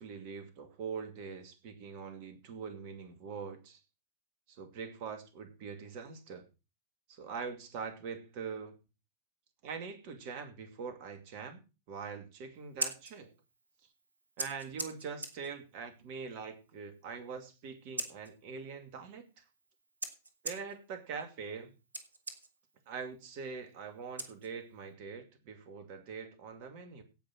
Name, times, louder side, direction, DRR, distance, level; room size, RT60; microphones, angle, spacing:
voice 1, 0.0-3.8 4.5-6.4 7.1-8.8 9.6-11.6 11.9-13.3 14.4-19.4 20.4-21.7 22.9-27.0, right 5 dB, 45° right, 2.5 m, -43 dB
Scissors, 12.5-24.9, right 2 dB, 75° right, 1.9 m, -45 dB
17.0 x 5.9 x 6.1 m
figure-of-eight pair, 90°, 0 cm